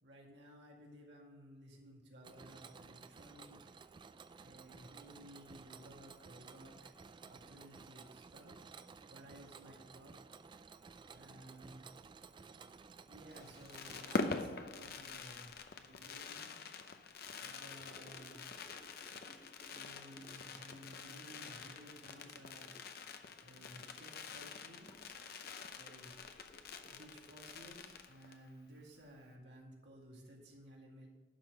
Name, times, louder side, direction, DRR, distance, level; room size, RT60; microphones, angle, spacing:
voice 1, 0.0-3.7 4.4-6.9 7.3-8.6 9.1-10.1 11.1-11.8 13.1-16.5 17.4-18.6 19.7-22.7 23.4-24.9 25.8-26.1 26.8-31.1, equal, 75° right, -2 dB, 2.2 m, -56 dB
Mechanisms, 2.2-14.5, right 5 dB, 25° right, 0.3 m, -55 dB
Fireworks, 13.3-28.5 28.8-28.9 29.1-29.4, left 3 dB, 60° left, 0.7 m, -45 dB
Gurgling / Sink (filling or washing) / Trickle dribble, 17.7-29.4 29.6-30.0 30.2-30.3, equal, 30° left, 1.6 m, -63 dB
11.5 x 3.8 x 7.4 m, 1.3 s
head